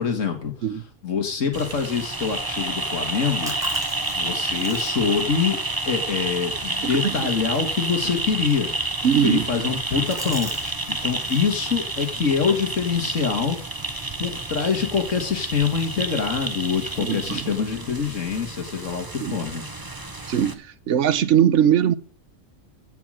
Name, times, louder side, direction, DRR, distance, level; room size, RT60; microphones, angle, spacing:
voice 1, 0.0-0.5 1.0-3.5 4.1-5.6 5.9-8.7 9.2-13.6 14.2-19.6, left 6 dB, 75° left, 2.2 m, -25 dB
sound 1, 1.5-20.5, right 2 dB, 20° right, 1.1 m, -30 dB
sound 2, 3.0-10.7 11.0-11.5 11.9-14.2, equal, ahead, 3.8 m, -43 dB
voice 2, 6.8-7.3 9.0-9.5 17.0-17.4 19.2-19.4 20.3-21.9, right 9 dB, 70° right, 1.2 m, -21 dB
15.0 x 5.9 x 6.3 m
omnidirectional pair, 1.3 m